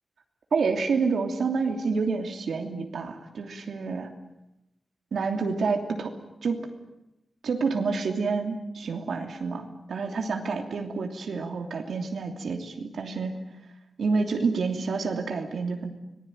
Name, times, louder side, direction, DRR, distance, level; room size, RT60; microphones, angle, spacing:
voice 1, 0.5-4.1 5.1-6.1 6.4-6.7 7.4-13.4 14.0-15.9, right 4 dB, 85° right, 4 dB, 2.9 m, -28 dB
25.5 x 20.0 x 9.1 m, 0.93 s
wide cardioid pair, 150°, 0 cm